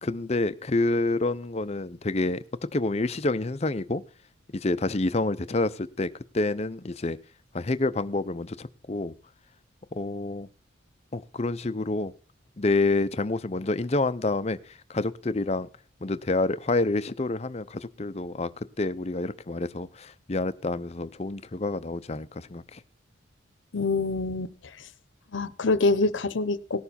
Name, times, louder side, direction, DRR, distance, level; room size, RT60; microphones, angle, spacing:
voice 1, 0.0-2.4 2.7-4.0 4.5-7.2 7.5-9.1 9.9-10.5 11.1-12.1 12.6-15.7 16.0-18.5 18.8-22.8, left 2 dB, 30° left, 14 dB, 0.6 m, -28 dB
voice 2, 23.7-24.5 25.3-26.8, left 3 dB, 70° left, 15 dB, 0.8 m, -25 dB
18.0 x 6.9 x 4.2 m, 0.38 s
head